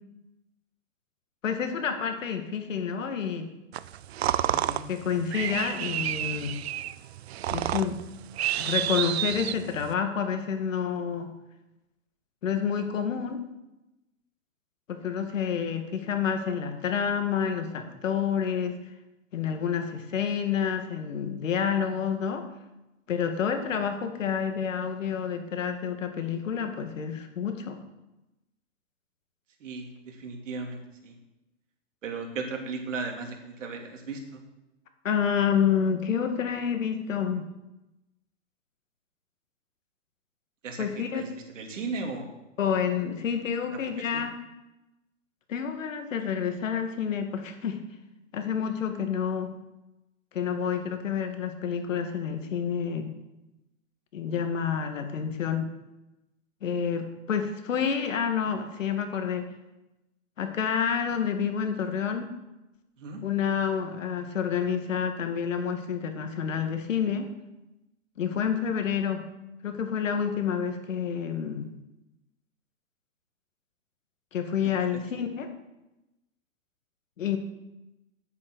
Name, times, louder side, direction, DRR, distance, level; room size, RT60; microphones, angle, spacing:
voice 1, 1.4-3.5 4.9-6.6 7.5-8.0 8.6-11.3 12.4-13.4 14.9-18.8 19.3-22.4 23.1-27.8 35.0-37.4 40.8-41.2 42.6-44.4 45.5-47.8 48.3-49.5 50.3-53.1 54.1-55.7 56.6-59.5 60.4-62.3 63.2-67.3 68.2-69.3 69.6-71.7 74.3-75.5 77.2-77.4, left 7 dB, 70° left, 6 dB, 2.1 m, -29 dB
sound 1, 3.7-9.9, right 12 dB, 55° right, 0.5 m, -30 dB
voice 2, 4.5-4.9 29.6-31.1 32.0-34.4 40.6-41.3 41.5-42.3 44.1-44.2 63.0-63.2, right 4 dB, 70° right, 3 dB, 2.8 m, -36 dB
10.5 x 8.0 x 6.3 m, 0.96 s
hypercardioid pair, 150°, 39 cm